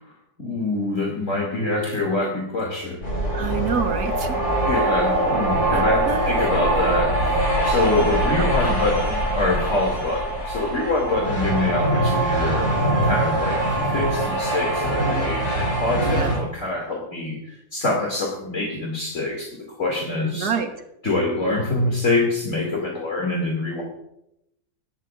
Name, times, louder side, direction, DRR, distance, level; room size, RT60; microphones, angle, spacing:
voice 1, 0.4-3.0 4.6-12.7 13.0-20.5 21.0-23.8, left 2 dB, 50° left, -2 dB, 3.0 m, -25 dB
sound 1, 3.0-16.4, right 1 dB, 85° left, 7.5 m, -23 dB
voice 2, 3.3-4.4 5.7-6.3 8.4-8.8 16.0-16.3 20.3-20.7, right 6 dB, 90° right, 5 dB, 1.9 m, -27 dB
20.0 x 14.0 x 2.6 m, 0.82 s
omnidirectional pair, 1.6 m